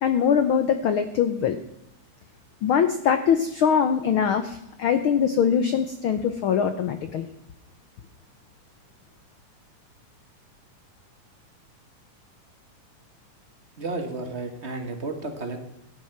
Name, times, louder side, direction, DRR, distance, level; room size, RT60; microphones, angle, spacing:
voice 1, 0.0-1.6 2.6-7.3, left 7 dB, 85° left, 9 dB, 1.1 m, -22 dB
voice 2, 13.8-15.7, right 3 dB, 35° right, 5 dB, 1.2 m, -32 dB
14.5 x 10.5 x 5.8 m, 0.82 s
omnidirectional pair, 3.5 m